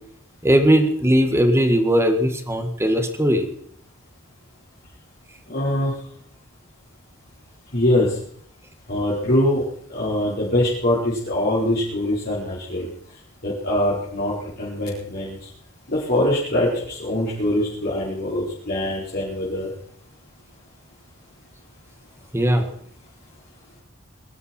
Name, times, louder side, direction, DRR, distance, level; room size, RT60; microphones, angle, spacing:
voice 1, 0.4-3.5 22.3-22.6, equal, 15° right, 7 dB, 1.9 m, -18 dB
voice 2, 5.5-5.9 7.7-8.1 8.9-9.6 9.9-12.9 13.4-15.4 15.9-19.7, left 1 dB, 50° left, -7 dB, 4.6 m, -23 dB
23.0 x 12.5 x 4.5 m, 0.64 s
head